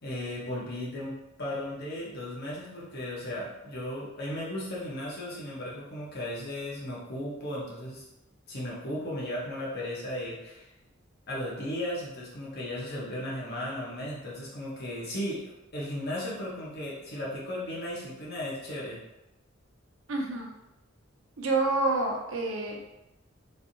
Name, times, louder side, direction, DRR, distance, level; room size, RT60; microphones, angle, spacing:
voice 1, 0.0-8.0 8.5-10.6 11.3-19.0, left 1 dB, 55° left, -5 dB, 1.0 m, -36 dB
voice 2, 20.1-20.5 21.4-22.8, right 2 dB, 80° right, 0 dB, 0.6 m, -28 dB
3.2 x 2.7 x 2.7 m, 0.91 s
head